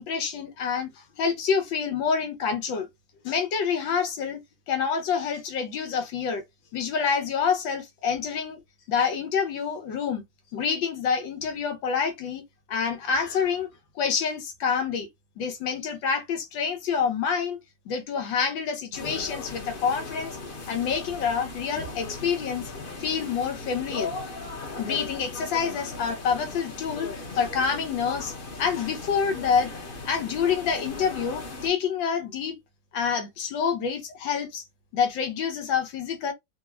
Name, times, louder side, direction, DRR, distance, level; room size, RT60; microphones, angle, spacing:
voice 1, 0.0-2.9 3.2-4.4 4.7-6.4 6.7-8.6 8.9-10.2 10.5-12.4 12.7-13.7 13.9-15.1 15.4-17.6 17.9-20.4 20.7-22.7 23.0-24.1 24.8-28.3 28.6-29.7 30.0-32.6 32.9-34.6 34.9-36.3, left 6 dB, 85° left, 1.6 m, -27 dB
sound 1, 18.9-31.7, left 3 dB, 40° left, 0.8 m, -38 dB
3.8 x 2.2 x 2.3 m
omnidirectional pair, 2.0 m